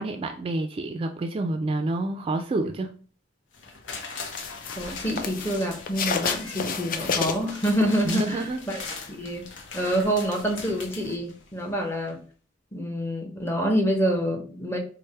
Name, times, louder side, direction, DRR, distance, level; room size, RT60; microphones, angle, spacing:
voice 1, 0.0-3.0 8.0-8.6, right 2 dB, 30° right, 0.3 m, -28 dB
sound 1, 3.5-11.7 12.1-12.2, left 4 dB, 80° left, 0.7 m, -40 dB
sound 2, 4.2-8.4 8.8-11.1, left 6 dB, 50° left, 0.4 m, -31 dB
voice 2, 4.8-8.8 9.1-9.5 9.7-12.2 12.7-14.8, equal, 15° left, 0.7 m, -27 dB
3.3 x 2.0 x 4.2 m
head